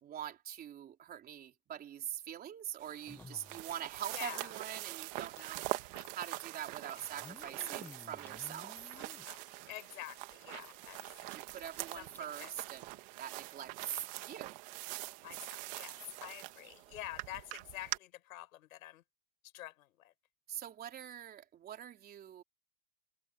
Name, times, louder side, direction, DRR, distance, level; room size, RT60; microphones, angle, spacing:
voice 1, 0.0-5.7 6.1-9.0 11.3-14.6 20.5-22.4, right 10 dB, 20° right, 3.9 m, -44 dB
sound 1, 2.8-18.0, right 21 dB, 35° right, 1.5 m, -44 dB
sound 2, 2.9-4.3 4.6-4.7 4.9-5.0 6.0-6.1 7.0-9.3 9.9-10.0 10.3-10.4 10.8-11.8 12.1-12.2 12.5-12.7 13.5-13.6, left 3 dB, 5° left, 0.9 m, -55 dB
voice 2, 4.1-4.5 6.9-7.1 7.4-7.8 9.0-9.4 9.7-11.0 12.0-12.5 15.2-19.0 19.5-20.1, left 15 dB, 70° left, 6.9 m, -48 dB
sound 3, 5.1-12.6, left 19 dB, 55° left, 4.8 m, -61 dB
supercardioid pair, 165°, 43 cm